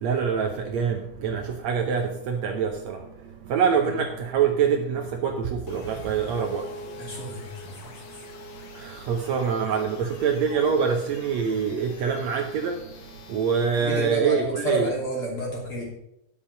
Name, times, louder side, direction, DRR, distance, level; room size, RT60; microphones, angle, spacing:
voice 1, 0.0-3.0 3.5-6.6 8.8-12.8 13.3-14.9, right 6 dB, 70° right, 3 dB, 1.8 m, -25 dB
sound 1, 5.7-14.1, left 2 dB, 85° left, 3.1 m, -44 dB
voice 2, 7.0-7.9 13.8-15.8, right 1 dB, 40° left, -3 dB, 3.5 m, -30 dB
10.5 x 7.1 x 5.6 m, 0.82 s
omnidirectional pair, 3.7 m